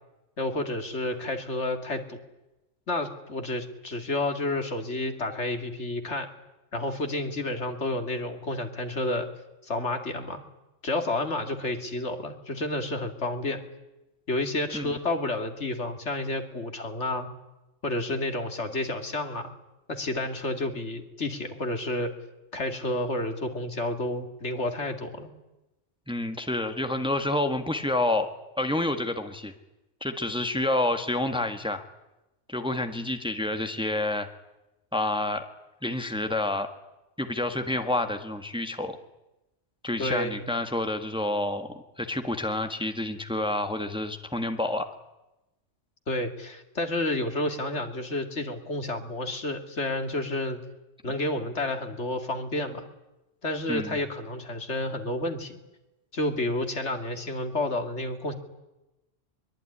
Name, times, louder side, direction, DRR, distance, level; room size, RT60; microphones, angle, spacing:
voice 1, 0.4-2.2 2.9-6.3 6.7-9.3 9.6-10.4 10.8-13.6 14.3-17.3 17.8-19.5 19.9-22.1 22.5-25.3 40.0-40.5 46.1-50.6 51.0-52.8 53.4-55.6 56.1-58.3, left 2 dB, 70° left, 6 dB, 2.7 m, -30 dB
voice 2, 26.1-28.3 28.5-29.5 30.0-31.8 32.5-34.3 34.9-35.4 35.8-36.7 37.2-39.0 39.8-44.9 53.7-54.0, left 1 dB, 5° right, 7 dB, 1.5 m, -28 dB
23.0 x 22.5 x 9.9 m, 0.98 s
omnidirectional pair, 1.2 m